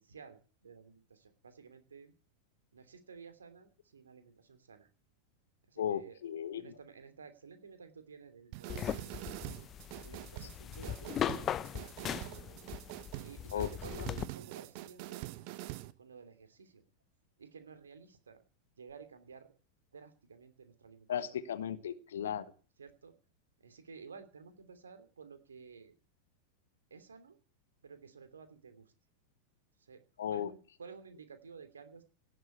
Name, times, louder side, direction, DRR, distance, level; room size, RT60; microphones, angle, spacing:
voice 1, 0.0-2.1 2.7-4.9 5.7-6.2 6.5-9.6 10.0-12.0 13.2-15.5 16.0-16.8 17.4-18.4 18.8-19.5 19.9-21.4 22.8-23.1 23.6-25.9 26.9-27.4 27.8-28.9 29.8-30.0 30.3-32.0, right 5 dB, 70° right, 9 dB, 2.8 m, -53 dB
voice 2, 5.8-6.7 13.5-13.7 21.1-22.5 30.2-30.5, left 9 dB, 60° left, 13 dB, 1.4 m, -36 dB
sound 1, 8.5-15.9, right 18 dB, 45° right, 1.0 m, -45 dB
sound 2, 8.7-14.2, left 10 dB, 30° left, 0.7 m, -39 dB
17.5 x 7.7 x 8.3 m, 0.39 s
figure-of-eight pair, 90°, 0 cm